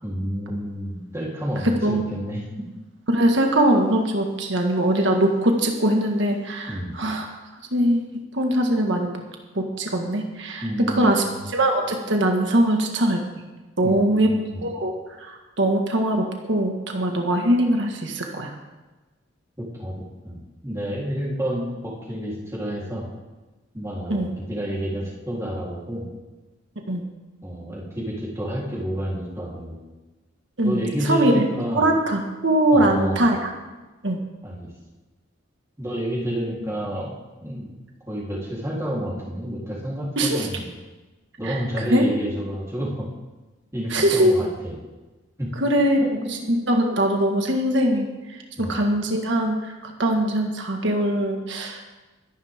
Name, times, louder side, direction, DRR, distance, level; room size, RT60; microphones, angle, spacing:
voice 1, 0.0-2.6 6.7-6.9 10.6-11.4 13.8-14.6 19.6-19.9 20.2-23.1 23.7-26.1 27.4-29.8 30.6-31.9 32.7-33.3 34.4-34.7 35.8-37.1 37.4-37.7 38.1-40.7 41.4-43.1 43.7-44.7 45.4-45.5 45.8-46.1 48.6-48.8, equal, 15° right, -5 dB, 3.6 m, -29 dB
voice 2, 3.1-7.3 7.7-8.1 8.3-9.2 9.5-11.2 11.5-13.2 13.8-14.3 14.6-18.5 24.1-24.3 26.9-27.0 30.6-31.5 31.7-33.5 34.0-34.2 40.2-40.5 41.5-41.6 41.9-42.1 43.9-44.5 45.6-46.0 46.5-48.1 48.6-49.5 49.8-51.8, right 1 dB, 60° right, 2 dB, 1.7 m, -21 dB
23.0 x 11.0 x 3.7 m, 1.2 s
head